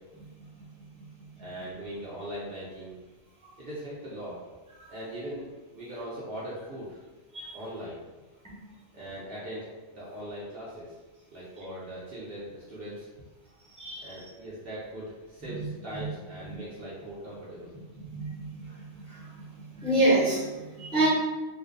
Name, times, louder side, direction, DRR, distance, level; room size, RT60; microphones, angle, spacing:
voice 1, 1.4-2.9 3.6-4.4 4.9-7.0 7.5-8.0 8.9-9.7 9.9-10.9 11.3-13.1 14.0-17.7, equal, 60° right, -8 dB, 0.6 m, -40 dB
voice 2, 13.8-14.2 15.5-16.1 18.1-21.1, right 1 dB, 5° left, -10 dB, 0.5 m, -29 dB
2.5 x 2.0 x 2.5 m, 1.2 s
omnidirectional pair, 1.3 m